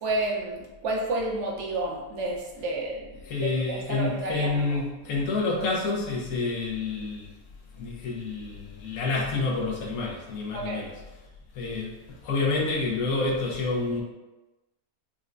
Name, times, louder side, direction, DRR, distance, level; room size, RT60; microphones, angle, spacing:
voice 1, 0.0-4.8 10.5-10.8, right 2 dB, 60° right, -2 dB, 1.0 m, -31 dB
voice 2, 3.2-7.3 7.8-10.9 11.5-11.9 12.2-14.0, left 3 dB, 80° left, -2 dB, 1.2 m, -28 dB
5.1 x 2.2 x 2.5 m, 1.1 s
omnidirectional pair, 1.5 m